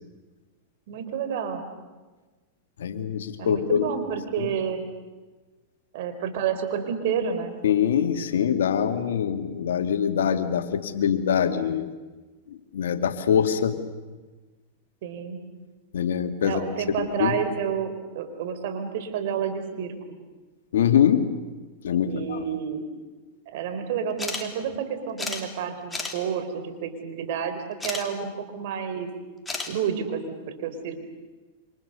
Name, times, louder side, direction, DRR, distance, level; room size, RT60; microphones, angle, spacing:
voice 1, 0.9-1.7 3.4-4.9 5.9-7.5 15.0-15.4 16.4-19.9 22.0-22.8 23.5-29.1 29.7-31.0, right 7 dB, 65° right, 8 dB, 4.3 m, -30 dB
voice 2, 2.8-3.8 4.4-4.5 7.6-11.9 12.5-13.8 15.9-16.6 17.0-17.3 20.7-21.3 21.8-22.4, left 8 dB, 85° left, 7 dB, 2.2 m, -24 dB
sound 1, 24.2-24.4 24.7-24.8 25.2-25.4 25.9-26.1 27.8-28.0 29.5-29.7, left 3 dB, 10° left, 3.4 m, -31 dB
27.5 x 25.5 x 6.8 m, 1.2 s
hypercardioid pair, 120°, 0 cm